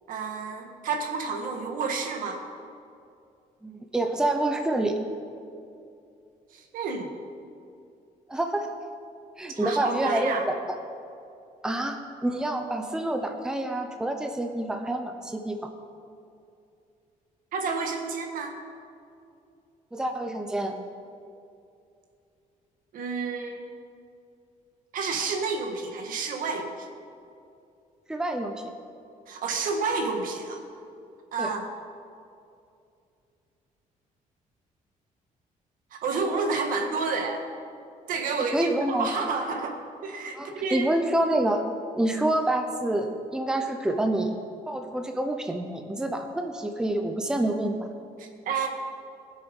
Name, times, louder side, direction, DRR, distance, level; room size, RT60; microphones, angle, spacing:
voice 1, 0.1-2.4 6.5-7.1 9.5-10.4 17.5-18.6 22.9-23.6 24.9-26.7 29.3-30.6 31.3-31.7 35.9-37.4 38.1-40.9 48.2-48.7, right 4 dB, 70° right, 3 dB, 1.7 m, -30 dB
voice 2, 3.6-5.0 8.3-8.7 9.4-10.8 11.6-15.6 19.9-20.8 28.1-28.5 31.4-31.5 38.4-39.1 40.3-41.7 42.0-44.4 44.7-47.8, right 1 dB, 5° right, 4 dB, 0.8 m, -27 dB
20.0 x 7.3 x 5.4 m, 2.6 s
cardioid pair, 150°, 14 cm